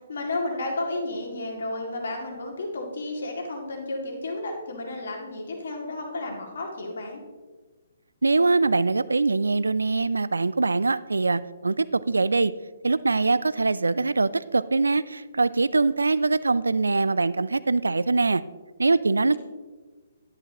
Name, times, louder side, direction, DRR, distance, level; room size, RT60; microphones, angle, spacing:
voice 1, 0.1-7.2 19.2-19.4, left 2 dB, 60° left, 1 dB, 2.1 m, -32 dB
voice 2, 8.2-12.5 12.8-18.4 18.8-19.4, right 3 dB, 75° right, 17 dB, 0.4 m, -23 dB
10.5 x 10.5 x 2.9 m, 1.3 s
figure-of-eight pair, 130°, 0 cm